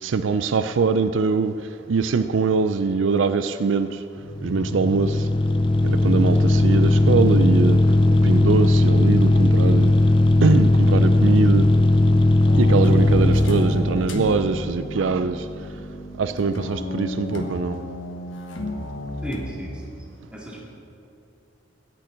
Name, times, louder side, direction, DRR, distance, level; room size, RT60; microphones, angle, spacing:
voice 1, 0.0-1.5 1.9-4.0 4.4-5.3 5.8-7.8 8.2-10.0 10.4-11.7 12.5-15.5 16.2-17.8, right 4 dB, 75° right, 11 dB, 0.4 m, -22 dB
sound 1, 4.2-14.1, left 1 dB, 25° left, 0.5 m, -17 dB
sound 2, 12.5-19.5, left 1 dB, 80° left, 1.2 m, -32 dB
voice 2, 19.2-19.8 20.3-20.7, equal, 5° right, -4 dB, 2.2 m, -33 dB
16.5 x 10.5 x 3.9 m, 2.7 s
head